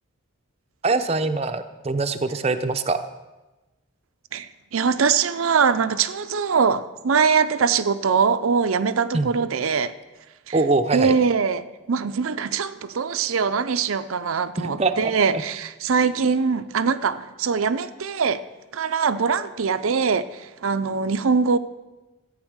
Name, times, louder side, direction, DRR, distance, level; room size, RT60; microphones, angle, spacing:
voice 1, 0.8-3.0 9.1-9.3 10.5-11.1 14.6-15.0 15.3-15.4, right 3 dB, 30° right, 8 dB, 0.6 m, -23 dB
voice 2, 4.3-9.9 10.5-10.6 10.9-18.4 18.7-21.6, right 5 dB, 85° right, 11 dB, 0.6 m, -22 dB
13.5 x 8.9 x 6.4 m, 1.1 s
head